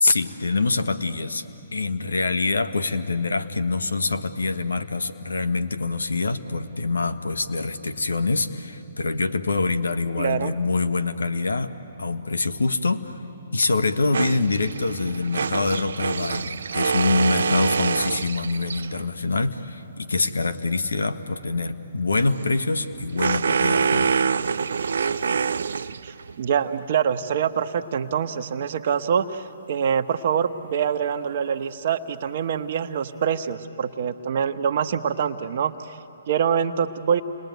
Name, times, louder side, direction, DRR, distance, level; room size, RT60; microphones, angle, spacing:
voice 1, 0.0-1.4 1.7-11.7 12.0-13.1 13.5-24.1, left 3 dB, 90° left, 10 dB, 1.3 m, -25 dB
voice 2, 10.2-10.5 26.0-35.7 36.3-37.2, right 7 dB, 55° right, 9 dB, 1.1 m, -25 dB
sound 1, 14.1-19.1 22.1-26.3, right 6 dB, 75° right, 0.6 m, -26 dB
29.5 x 21.0 x 9.4 m, 3.0 s
hypercardioid pair, 140°, 0 cm